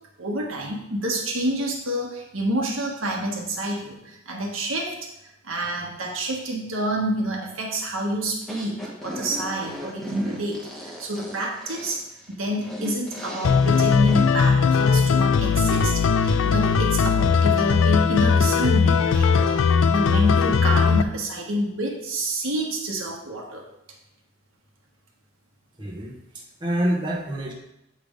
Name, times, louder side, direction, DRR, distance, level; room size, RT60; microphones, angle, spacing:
voice 1, 0.2-5.0 5.2-12.0 12.3-23.6, right 1 dB, 85° right, -1 dB, 1.5 m, -28 dB
sound 1, 8.4-14.3, equal, ahead, 1.0 m, -37 dB
sound 2, 13.4-21.0, left 5 dB, 70° left, 0.3 m, -19 dB
voice 2, 25.8-27.5, right 1 dB, 25° right, -3 dB, 1.0 m, -27 dB
7.9 x 3.4 x 5.1 m, 0.84 s
head